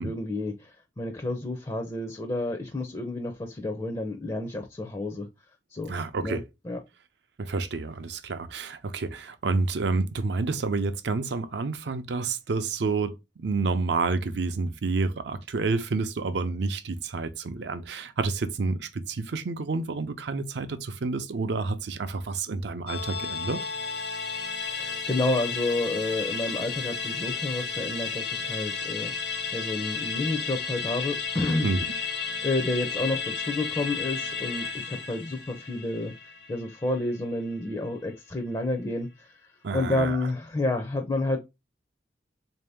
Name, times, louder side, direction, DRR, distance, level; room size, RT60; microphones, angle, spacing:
voice 1, 0.0-5.3 5.7-5.9 6.2-6.8 24.7-29.1 29.5-31.7 32.4-36.1 36.5-39.3 39.7-41.4, left 2 dB, 20° left, 0.4 m, -30 dB
voice 2, 5.9-6.4 7.4-23.6 31.6-31.8 39.6-40.2, right 3 dB, 70° right, 0.5 m, -29 dB
Musical instrument, 22.9-37.5 37.9-38.0, left 6 dB, 70° left, 0.8 m, -33 dB
3.7 x 2.7 x 3.3 m
head